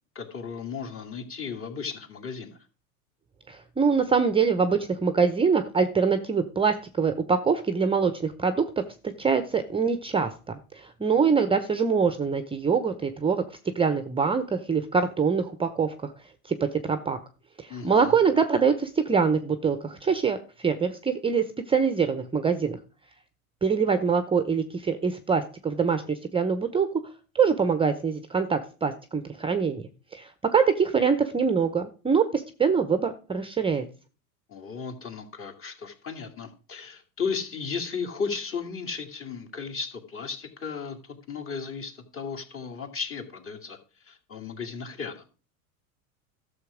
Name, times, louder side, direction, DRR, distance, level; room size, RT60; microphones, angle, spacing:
voice 1, 0.1-2.6 17.7-18.2 34.5-43.8 44.0-45.3, left 5 dB, 30° left, 4 dB, 2.4 m, -35 dB
voice 2, 3.5-8.8 9.2-13.4 13.7-16.1 16.5-16.6 16.8-17.2 17.6-20.4 20.6-22.8 23.6-26.9 27.3-33.8, right 5 dB, 10° right, 10 dB, 0.8 m, -24 dB
12.5 x 7.0 x 4.9 m, 0.36 s
hypercardioid pair, 105°, 43 cm